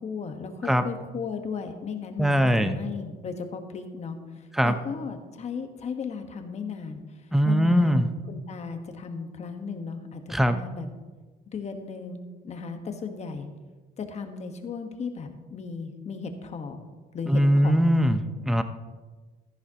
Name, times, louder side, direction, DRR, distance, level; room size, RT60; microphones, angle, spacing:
voice 1, 0.0-7.0 7.4-10.9 11.5-13.5 14.0-16.8 17.1-17.8, left 5 dB, 40° left, 6 dB, 1.3 m, -36 dB
voice 2, 2.2-2.7 4.5-4.7 7.3-8.1 10.3-10.6 17.3-18.6, equal, ahead, 9 dB, 0.6 m, -21 dB
13.5 x 11.0 x 2.9 m, 1.3 s
cardioid pair, 110°, 17 cm